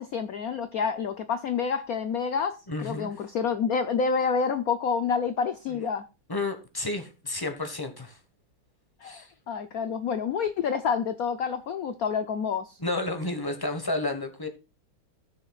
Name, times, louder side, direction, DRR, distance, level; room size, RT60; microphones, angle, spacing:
voice 1, 0.0-6.0 9.0-12.8, left 6 dB, 75° left, 0.8 m, -28 dB
voice 2, 2.7-3.2 5.7-5.8 6.3-8.2 9.0-9.3 12.8-14.5, left 2 dB, 15° left, 1.0 m, -31 dB
16.5 x 6.8 x 2.4 m
omnidirectional pair, 2.4 m